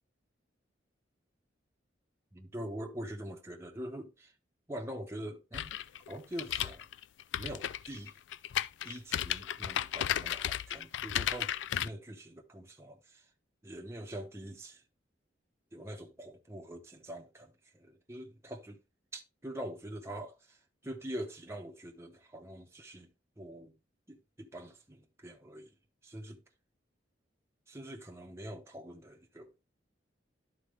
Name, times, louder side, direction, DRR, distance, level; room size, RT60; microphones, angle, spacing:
voice 1, 2.3-4.3 4.7-5.7 6.1-6.8 7.4-8.2 8.8-13.3 13.6-14.8 15.7-18.8 19.1-23.7 24.1-25.8 26.0-26.4 27.7-29.5, right 1 dB, 15° right, 0.8 m, -44 dB
sound 1, 5.5-11.9, left 11 dB, 75° left, 0.3 m, -34 dB
11.5 x 4.1 x 3.2 m
head